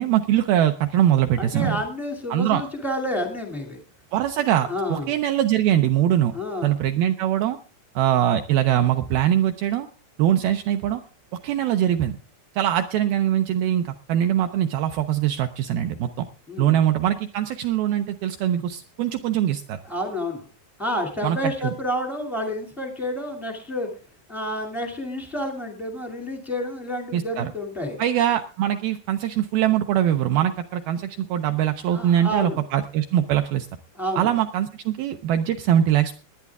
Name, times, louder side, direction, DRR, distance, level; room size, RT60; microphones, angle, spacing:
voice 1, 0.0-1.8 2.3-2.6 4.1-6.3 6.6-7.6 8.0-9.9 10.2-11.0 11.4-12.2 12.6-16.1 16.6-19.8 21.2-21.4 21.6-21.7 27.1-27.5 28.0-33.7 34.2-36.1, right 11 dB, 80° right, 7 dB, 2.2 m, -22 dB
voice 2, 1.4-3.8 4.7-5.1 6.3-6.7 16.5-16.8 19.8-20.5 20.8-23.9 24.3-28.0 31.9-32.6 33.9-34.3, left 1 dB, ahead, 2 dB, 0.3 m, -29 dB
19.0 x 10.5 x 3.5 m, 0.38 s
omnidirectional pair, 5.0 m